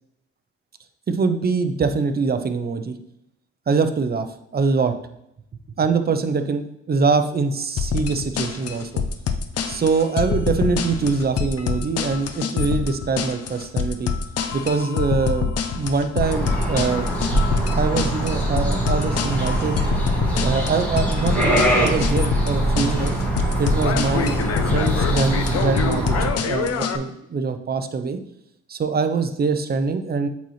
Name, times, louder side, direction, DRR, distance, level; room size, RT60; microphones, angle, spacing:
voice 1, 1.1-2.9 3.7-4.3 4.5-5.0 5.8-9.0 9.7-14.1 14.5-17.1 17.7-19.8 20.4-23.2 23.6-24.4 24.7-26.2 26.4-28.2 28.7-30.3, right 4 dB, 30° right, 8 dB, 0.7 m, -23 dB
sound 1, 7.8-27.0, left 6 dB, 55° left, 0.7 m, -26 dB
sound 2, 16.2-26.3, right 1 dB, 5° left, 2.3 m, -23 dB
8.1 x 4.2 x 3.2 m, 0.80 s
cardioid pair, 90°, 30 cm